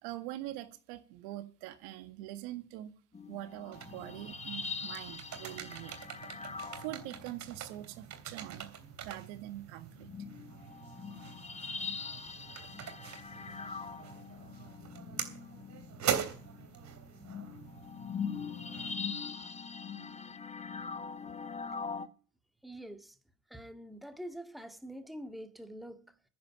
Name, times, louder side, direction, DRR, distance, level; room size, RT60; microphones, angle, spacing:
voice 1, 0.0-2.9 3.3-5.9 6.3-6.4 6.8-8.8 9.0-10.1, right 14 dB, 65° right, 1.8 m, -43 dB
sound 1, 3.1-7.6 8.7-8.8 10.0-22.1, left 5 dB, 15° left, 1.2 m, -42 dB
sound 2, 3.7-19.0, right 8 dB, 40° right, 3.1 m, -43 dB
voice 2, 22.6-23.2 23.5-26.2, equal, ahead, 1.9 m, -45 dB
10.5 x 8.1 x 9.1 m
hypercardioid pair, 75°, 41 cm